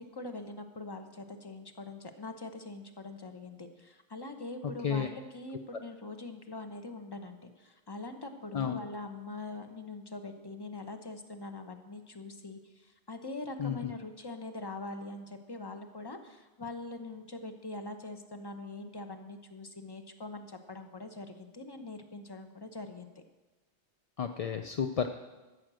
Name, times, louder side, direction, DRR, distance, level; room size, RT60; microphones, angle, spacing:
voice 1, 0.0-23.1, left 2 dB, 25° left, 7 dB, 0.9 m, -43 dB
voice 2, 13.6-13.9 24.2-25.1, left 7 dB, 50° left, 7 dB, 0.5 m, -31 dB
14.0 x 6.5 x 7.6 m, 1.2 s
omnidirectional pair, 1.1 m